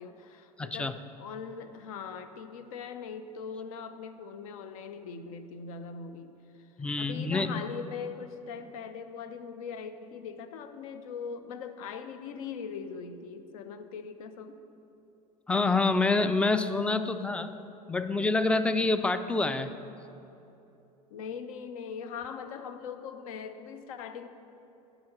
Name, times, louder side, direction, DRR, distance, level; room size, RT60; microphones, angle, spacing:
voice 1, 0.0-14.7 21.1-24.3, left 6 dB, 65° left, 10 dB, 0.6 m, -41 dB
voice 2, 0.6-0.9 6.8-7.6 15.5-17.5 17.9-19.7, left 3 dB, 5° left, 11 dB, 0.3 m, -27 dB
10.5 x 4.0 x 5.9 m, 2.9 s
figure-of-eight pair, 70°, 19 cm